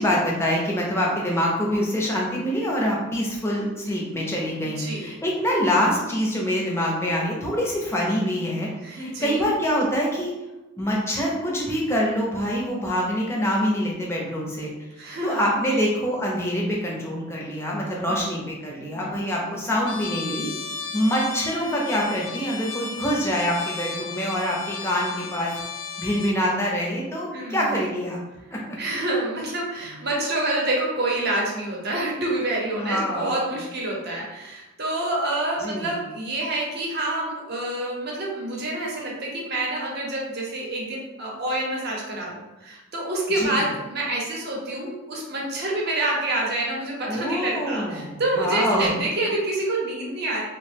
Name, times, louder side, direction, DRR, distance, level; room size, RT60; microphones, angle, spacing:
voice 1, 0.0-10.3 10.8-14.7 15.2-20.5 20.9-25.5 26.0-28.2 28.5-28.8 32.7-33.4 35.6-35.9 43.4-43.6 47.1-48.9, equal, 10° left, -3 dB, 0.5 m, -25 dB
voice 2, 4.6-5.1 8.8-9.4 15.0-15.8 18.1-18.3 18.9-19.2 19.5-19.7 27.3-27.8 28.8-50.4, right 1 dB, 50° right, -3 dB, 0.7 m, -27 dB
Trumpet, 19.8-26.4, left 5 dB, 65° left, 0.3 m, -35 dB
2.7 x 2.1 x 3.2 m, 1.0 s
head